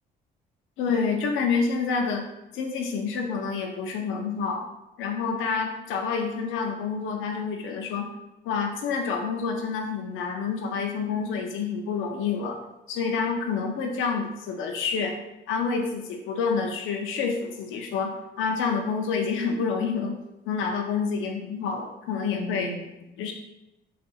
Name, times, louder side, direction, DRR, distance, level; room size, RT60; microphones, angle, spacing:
voice 1, 0.8-2.2 2.5-4.6 5.0-8.1 8.4-12.6 12.9-15.2 15.5-22.9 23.2-23.3, left 5 dB, 85° left, 2 dB, 0.4 m, -28 dB
3.8 x 2.4 x 2.3 m, 0.95 s
cardioid pair, 90°, 20 cm